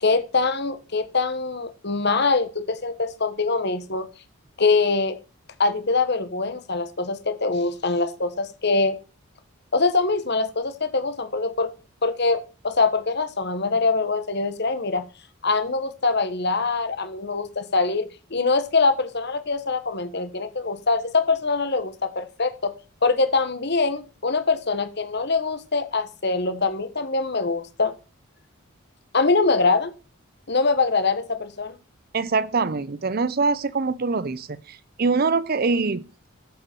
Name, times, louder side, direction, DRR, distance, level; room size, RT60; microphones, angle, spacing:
voice 1, 0.0-4.1 4.6-5.2 5.6-9.0 9.7-11.7 12.0-15.0 15.4-22.7 23.0-27.9 29.1-29.9 30.5-31.8, left 3 dB, 50° left, 1.4 m, -23 dB
voice 2, 32.1-36.0, right 4 dB, 45° right, 0.5 m, -24 dB
13.5 x 7.8 x 4.6 m
head